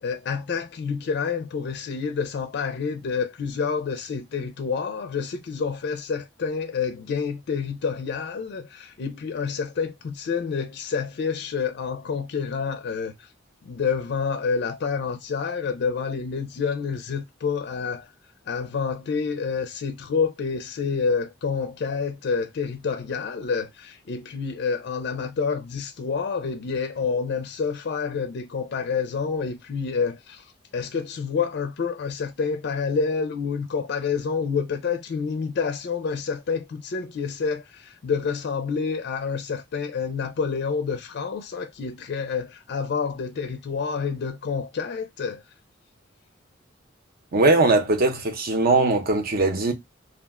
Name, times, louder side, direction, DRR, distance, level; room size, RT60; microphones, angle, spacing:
voice 1, 0.0-13.1 13.6-18.1 18.5-45.4, left 5 dB, 60° left, 0.4 m, -28 dB
voice 2, 47.3-49.7, right 2 dB, 50° right, 0.7 m, -20 dB
2.3 x 2.1 x 3.5 m
head